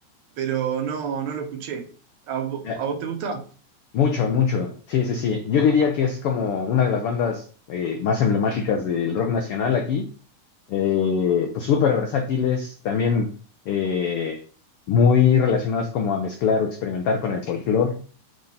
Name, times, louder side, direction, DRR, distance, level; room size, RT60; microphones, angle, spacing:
voice 1, 0.4-1.8 2.3-3.4, right 7 dB, 70° right, 2.1 m, -28 dB
voice 2, 3.9-10.0 10.7-13.3 13.7-14.4 14.9-18.0, left 6 dB, 80° left, 1.3 m, -22 dB
6.3 x 3.7 x 5.5 m
omnidirectional pair, 3.5 m